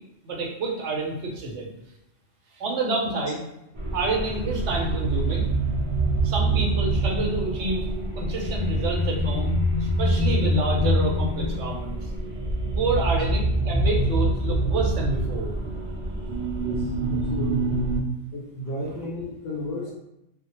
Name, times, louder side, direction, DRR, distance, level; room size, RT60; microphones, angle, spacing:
voice 1, 0.2-1.7 2.5-3.4 3.9-5.5 6.2-7.9 8.1-12.0 12.7-15.5, right 2 dB, 75° right, 0 dB, 0.9 m, -28 dB
sound 1, 3.8-18.0, right 1 dB, 55° right, 0.3 m, -25 dB
voice 2, 16.6-17.7 18.3-19.9, left 1 dB, 60° left, -4 dB, 0.7 m, -33 dB
2.1 x 2.0 x 2.8 m, 0.85 s
omnidirectional pair, 1.2 m